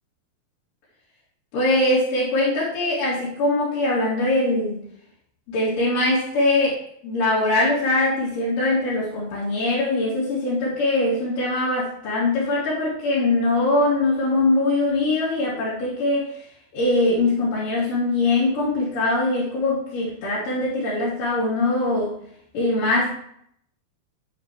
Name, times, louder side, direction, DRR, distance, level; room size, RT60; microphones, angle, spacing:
voice 1, 1.5-4.8 5.5-16.4 16.7-22.1 22.5-23.1, left 2 dB, 65° left, -9 dB, 3.9 m, -22 dB
9.2 x 9.0 x 3.1 m, 0.68 s
omnidirectional pair, 4.1 m